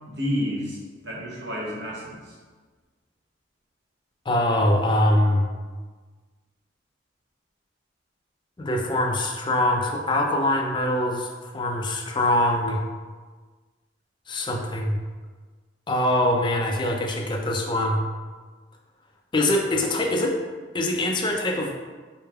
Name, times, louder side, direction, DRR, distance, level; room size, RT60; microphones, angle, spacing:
voice 1, 0.1-0.8 1.0-2.3, equal, 65° right, -5 dB, 1.0 m, -30 dB
voice 2, 4.3-5.5 8.6-12.8 14.3-15.0 15.9-18.0 19.3-20.4 20.7-21.7, left 1 dB, 25° left, 2 dB, 0.4 m, -23 dB
4.3 x 3.3 x 2.3 m, 1.4 s
head